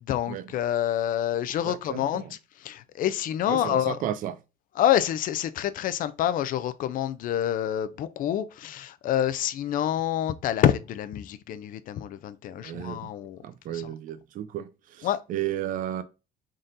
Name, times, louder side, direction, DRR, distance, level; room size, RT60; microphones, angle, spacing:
voice 1, 0.1-4.0 4.8-13.4 13.7-13.9 15.0-15.2, left 11 dB, 55° left, 0.4 m, -27 dB
voice 2, 1.6-2.3 3.5-4.3 12.6-13.1 13.4-16.0, right 11 dB, 55° right, 0.4 m, -33 dB
3.9 x 3.7 x 2.6 m
cardioid pair, 110°, 17 cm